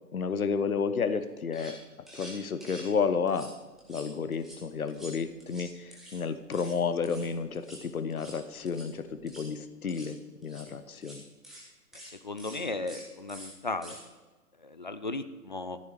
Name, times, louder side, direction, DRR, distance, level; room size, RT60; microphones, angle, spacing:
voice 1, 0.1-1.8 2.1-3.5 3.9-11.2, left 5 dB, 65° left, 12 dB, 1.1 m, -31 dB
sound 1, 1.2-1.3 1.5-1.8 2.1-2.9 3.3-3.5 3.8-4.6 4.9-6.2 6.5-6.7 7.0-7.3 7.5-7.8 8.1-8.4 8.7-8.9 9.2-9.5 9.9-10.1 10.4-10.6 11.0-11.2 11.4-11.6 11.9-12.1 12.4-12.6 12.9-13.0 13.3-13.5 13.8-14.0, equal, ahead, 0.9 m, -47 dB
voice 2, 12.2-14.0 14.6-15.8, left 2 dB, 30° left, 11 dB, 0.5 m, -35 dB
14.0 x 10.0 x 5.1 m, 1.2 s
figure-of-eight pair, 135°, 47 cm